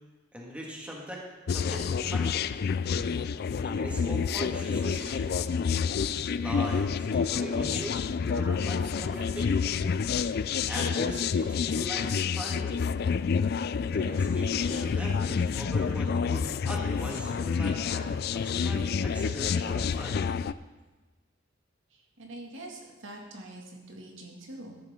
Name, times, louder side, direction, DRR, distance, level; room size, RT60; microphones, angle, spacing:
voice 1, 0.3-2.3 3.6-5.5 6.4-9.6 10.4-12.8 13.8-20.2, equal, 5° right, -2 dB, 1.9 m, -40 dB
sound 1, 1.5-20.5, left 6 dB, 55° left, 0.3 m, -28 dB
voice 2, 21.9-24.8, right 1 dB, 75° right, 0 dB, 2.3 m, -44 dB
14.0 x 11.5 x 3.8 m, 1.2 s
head